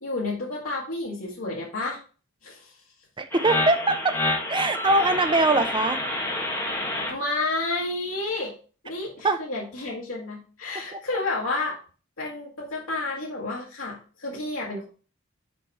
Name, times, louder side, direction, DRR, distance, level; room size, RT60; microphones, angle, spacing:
voice 1, 0.0-2.0 2.4-2.7 7.1-8.5 8.8-11.8 12.2-14.9, left 2 dB, 75° left, -4 dB, 1.6 m, -30 dB
voice 2, 3.2-3.9 4.5-6.0 9.2-9.4, right 2 dB, 25° right, 8 dB, 0.6 m, -22 dB
sound 1, 3.3-7.1, left 2 dB, 10° left, 1.4 m, -28 dB
6.2 x 4.6 x 4.0 m, 0.38 s
head